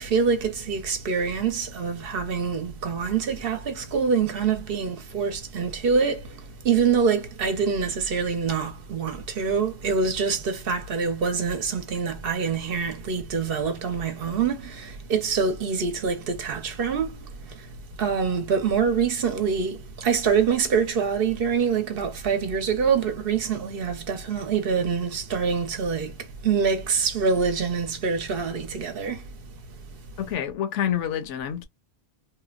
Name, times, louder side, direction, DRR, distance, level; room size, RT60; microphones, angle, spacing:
voice 1, 0.0-30.1, right 6 dB, 55° right, 0.9 m, -25 dB
voice 2, 30.2-31.7, left 9 dB, 75° left, 0.9 m, -27 dB
2.7 x 2.1 x 2.3 m
omnidirectional pair, 1.3 m